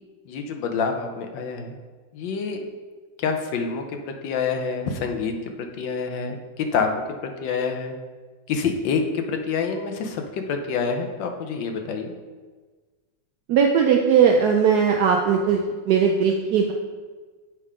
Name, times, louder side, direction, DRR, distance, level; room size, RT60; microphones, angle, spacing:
voice 1, 0.3-1.7 2.1-2.6 3.2-5.3 5.6-6.4 6.7-7.0 7.4-7.9 8.5-12.1, left 5 dB, 70° left, 4 dB, 1.3 m, -27 dB
voice 2, 13.5-16.7, right 6 dB, 85° right, 1 dB, 0.8 m, -19 dB
8.5 x 3.6 x 4.9 m, 1.4 s
omnidirectional pair, 2.3 m